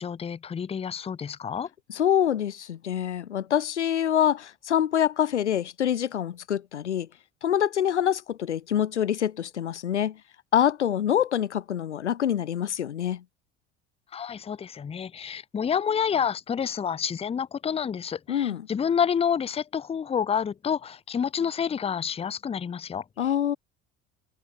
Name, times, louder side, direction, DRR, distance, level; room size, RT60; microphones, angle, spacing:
voice 1, 0.0-1.7 14.1-23.0, left 7 dB, 20° left, 0.6 m, -28 dB
voice 2, 1.9-7.1 7.4-10.2 10.5-13.2 18.3-18.7 23.2-23.6, left 10 dB, 90° left, 0.7 m, -25 dB
figure-of-eight pair, 65°, 34 cm